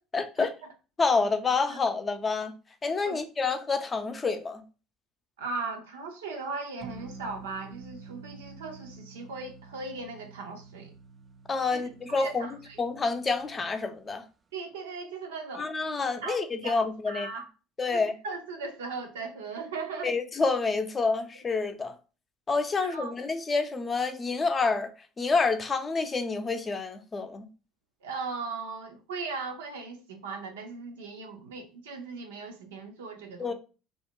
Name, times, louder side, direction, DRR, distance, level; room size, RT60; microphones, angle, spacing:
voice 1, 0.1-0.5 1.0-2.5 2.8-4.6 11.5-12.5 12.8-14.2 15.6-17.3 17.8-18.1 20.0-22.0 22.5-24.9 25.2-27.5 33.4-33.5, left 4 dB, 30° left, 0.5 m, -28 dB
voice 2, 5.4-10.9 11.7-12.8 14.5-15.7 16.2-17.5 17.9-20.1 22.8-23.1 28.0-33.5, right 4 dB, 90° right, 0.6 m, -38 dB
sound 1, 6.8-13.7, right 4 dB, 30° right, 0.3 m, -49 dB
2.4 x 2.1 x 3.6 m
hypercardioid pair, 75°, 0 cm